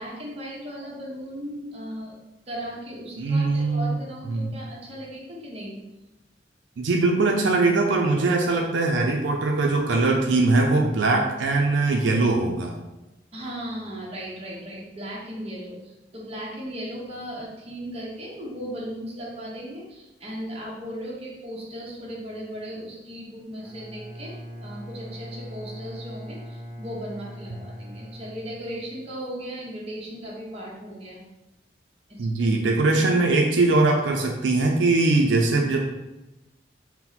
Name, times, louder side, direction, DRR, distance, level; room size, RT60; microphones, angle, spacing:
voice 1, 0.0-2.1 2.5-5.8 13.3-31.2 32.1-32.3, equal, 35° right, -4 dB, 1.0 m, -37 dB
voice 2, 3.2-4.0 4.3-4.5 6.8-12.7 32.2-35.8, right 3 dB, 85° right, 1 dB, 0.5 m, -21 dB
Bowed string instrument, 23.6-29.1, equal, 5° left, 1.3 m, -41 dB
4.2 x 2.1 x 4.0 m, 1.0 s
head